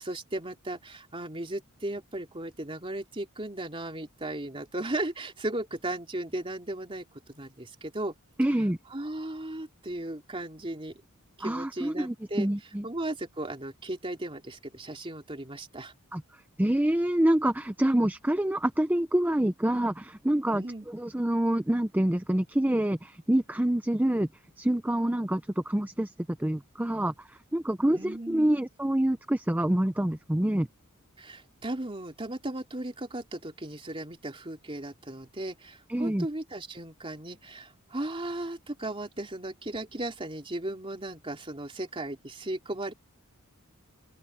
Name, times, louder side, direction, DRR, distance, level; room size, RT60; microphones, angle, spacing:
voice 1, 0.0-8.1 8.9-11.0 11.4-12.5 12.8-15.9 20.5-20.9 27.9-28.5 31.2-42.9, right 1 dB, 25° right, 3.2 m, -36 dB
voice 2, 8.4-8.8 11.4-12.8 16.1-16.2 16.6-24.3 24.6-26.1 26.4-27.1 27.5-30.7 35.9-36.3, right 1 dB, 10° right, 0.5 m, -26 dB
open air
head